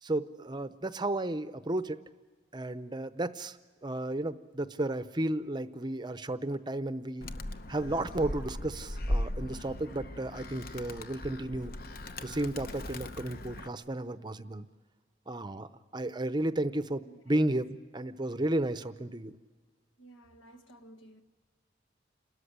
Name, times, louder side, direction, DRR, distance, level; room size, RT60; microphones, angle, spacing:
voice 1, 0.0-2.0 2.5-3.6 3.8-7.3 7.7-11.7 12.2-14.7 15.3-15.7 15.9-19.4, right 1 dB, 25° right, 0.6 m, -33 dB
Animal, 7.2-13.7, left 1 dB, 50° left, 0.8 m, -38 dB
voice 2, 20.0-21.2, right 1 dB, 85° left, 1.7 m, -54 dB
29.5 x 13.5 x 10.0 m
head